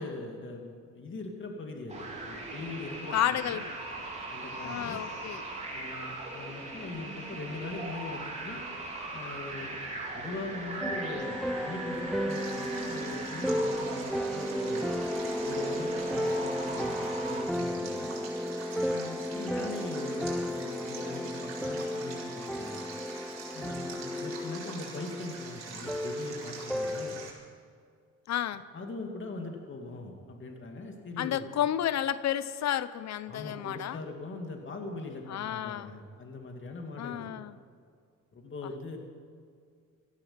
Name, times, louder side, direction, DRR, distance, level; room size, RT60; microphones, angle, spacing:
voice 1, 0.0-3.6 4.3-5.0 5.7-8.6 9.1-9.8 10.1-14.9 15.4-18.1 18.7-22.8 23.5-27.2 28.7-31.5 33.3-37.3 38.3-39.0, left 3 dB, 40° left, 2 dB, 2.6 m, -41 dB
sound 1, 1.9-17.4, right 2 dB, 20° right, 3.9 m, -40 dB
voice 2, 3.1-3.8 4.6-5.5 28.3-28.6 31.2-34.0 35.3-35.9 37.0-37.6, left 11 dB, 65° left, 16 dB, 0.7 m, -31 dB
sound 2, 10.8-27.3, equal, ahead, 0.8 m, -34 dB
Stream, 12.3-27.3, right 4 dB, 60° right, 4.7 m, -45 dB
17.5 x 14.0 x 5.9 m, 2.1 s
cardioid pair, 90°, 30 cm